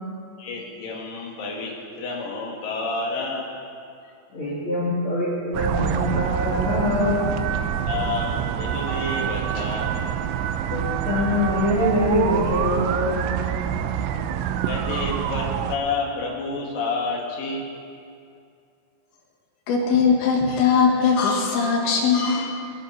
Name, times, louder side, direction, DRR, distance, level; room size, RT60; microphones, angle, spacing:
voice 1, 0.4-3.4 7.9-9.9 14.7-17.6, left 3 dB, 55° left, -2 dB, 3.5 m, -29 dB
voice 2, 4.3-7.2 10.7-13.2, left 1 dB, 35° left, -7 dB, 2.6 m, -24 dB
sound 1, 5.5-15.8, right 9 dB, 85° right, 2.8 m, -26 dB
voice 3, 19.7-22.5, left 5 dB, 85° left, 0 dB, 4.1 m, -20 dB
23.0 x 10.5 x 4.1 m, 2.4 s
omnidirectional pair, 5.2 m